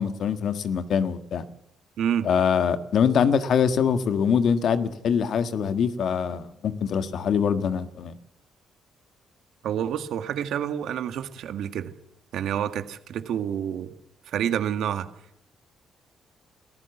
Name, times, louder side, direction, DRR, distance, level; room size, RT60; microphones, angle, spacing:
voice 1, 0.0-1.4 2.2-8.1, left 7 dB, 65° left, 10 dB, 1.6 m, -24 dB
voice 2, 2.0-2.3 9.6-11.9 12.3-13.9 14.3-15.1, right 9 dB, 75° right, 9 dB, 1.8 m, -28 dB
24.5 x 15.0 x 7.2 m, 0.75 s
cardioid pair, 90°, 0 cm